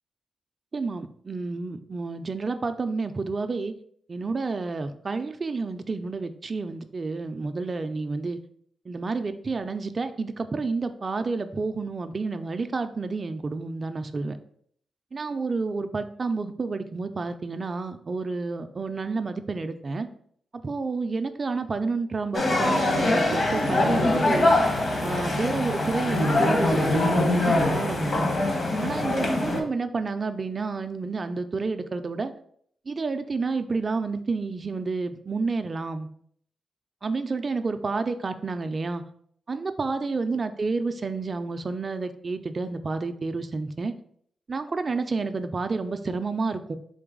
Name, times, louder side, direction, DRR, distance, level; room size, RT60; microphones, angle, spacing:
voice 1, 0.7-3.7 4.1-8.4 8.9-14.4 15.1-20.1 20.6-24.5 25.0-28.3 28.8-32.3 32.9-36.1 37.0-39.0 39.5-43.9 44.5-46.8, right 4 dB, 40° right, 8 dB, 0.4 m, -30 dB
sound 1, 22.3-29.6, left 2 dB, 50° left, 1.0 m, -23 dB
3.8 x 3.3 x 3.7 m, 0.63 s
cardioid pair, 100°, 0 cm